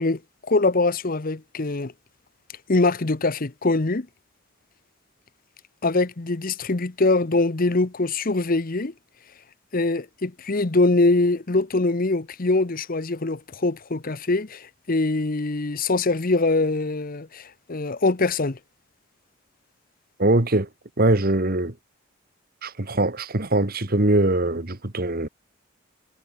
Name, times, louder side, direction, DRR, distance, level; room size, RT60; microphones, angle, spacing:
voice 1, 0.0-1.9 2.7-4.1 5.8-8.9 9.7-18.6, left 2 dB, 45° left, 0.9 m, -23 dB
voice 2, 20.2-20.7 21.0-21.7 22.6-25.3, right 2 dB, 45° right, 1.8 m, -22 dB
head